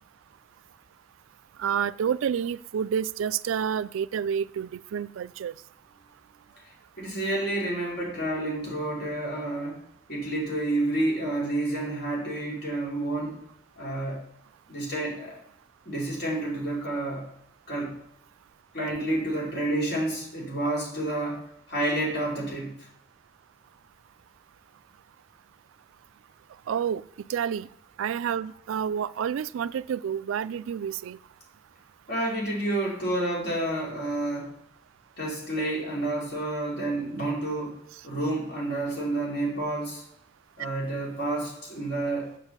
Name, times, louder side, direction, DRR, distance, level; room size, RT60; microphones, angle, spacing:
voice 1, 1.6-5.5 26.7-27.0 27.3-27.7 28.0-31.2, right 8 dB, 85° right, 0.3 m, -29 dB
voice 2, 6.6-9.8 10.1-13.4 13.8-14.2 14.7-15.4 15.8-17.2 17.7-17.9 18.7-22.9 32.1-34.5 35.2-40.0 40.6-42.3, right 1 dB, 55° left, 3.2 m, -29 dB
7.2 x 5.5 x 6.6 m
head